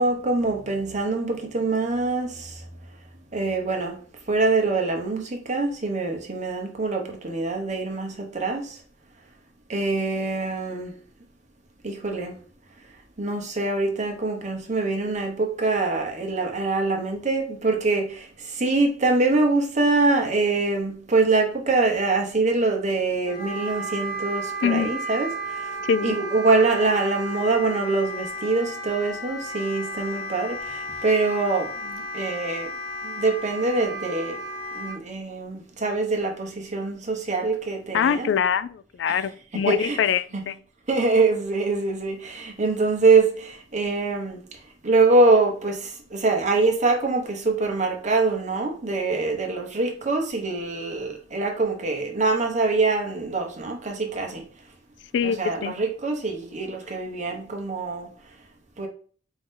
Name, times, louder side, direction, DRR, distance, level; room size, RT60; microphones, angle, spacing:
voice 1, 0.0-2.5 3.3-3.9 4.3-8.6 9.7-10.9 11.8-12.3 13.2-18.2 18.6-25.3 26.0-32.7 33.0-34.4 34.7-38.3 39.1-39.2 39.7-40.0 40.3-40.4 40.9-44.4 44.8-45.8 46.1-54.4 55.2-58.1 58.8-58.9, right 3 dB, 40° right, 1.0 m, -24 dB
Wind instrument woodwind instrument, 23.2-35.0, right 1 dB, 55° left, 1.2 m, -33 dB
voice 2, 24.6-25.0 25.9-26.2 37.9-40.6 55.1-55.4 55.6-55.7, left 7 dB, 70° left, 0.3 m, -24 dB
4.6 x 2.7 x 3.6 m
head